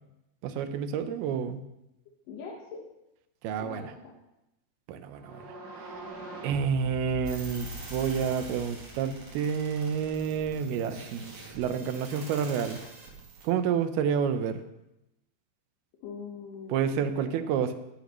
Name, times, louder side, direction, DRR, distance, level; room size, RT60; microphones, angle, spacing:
voice 1, 0.4-1.6 3.4-3.9 4.9-5.5 6.4-12.8 13.4-14.6 16.7-17.7, right 7 dB, 85° right, 9 dB, 2.8 m, -29 dB
voice 2, 2.3-2.8 3.6-4.1 16.0-17.5, left 5 dB, 65° left, -2 dB, 2.8 m, -42 dB
sound 1, 5.1-10.0, right 1 dB, 70° right, 5.5 m, -43 dB
sound 2, 7.2-13.5, right 3 dB, 55° right, 3.7 m, -45 dB
16.5 x 12.0 x 3.1 m, 0.91 s
omnidirectional pair, 4.4 m